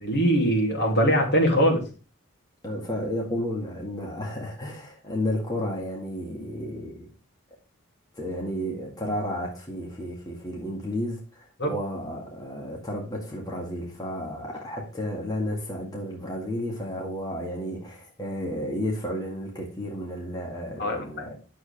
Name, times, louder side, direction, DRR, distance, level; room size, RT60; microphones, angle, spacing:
voice 1, 0.0-1.8 11.6-11.7 20.8-21.0, equal, 55° left, 2.7 m, -21 dB
voice 2, 2.6-7.1 8.1-21.3, equal, 20° left, 1.9 m, -32 dB
9.4 x 7.3 x 3.4 m
head